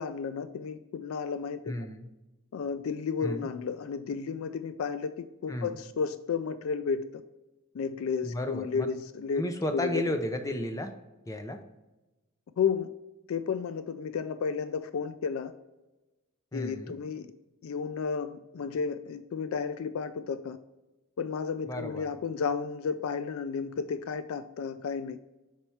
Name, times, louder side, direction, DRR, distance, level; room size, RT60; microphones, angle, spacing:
voice 1, 0.0-1.7 2.5-7.2 7.7-9.4 9.7-10.0 12.6-12.9 13.3-15.5 16.5-17.3 17.6-20.6 21.2-25.2, left 6 dB, 70° left, 12 dB, 0.3 m, -32 dB
voice 2, 1.7-2.1 3.2-3.5 5.5-5.8 8.2-8.9 9.4-10.9 11.3-11.6 16.5-17.0 21.7-22.1, left 1 dB, 15° left, 6 dB, 0.5 m, -33 dB
5.5 x 4.4 x 4.5 m, 1.0 s
head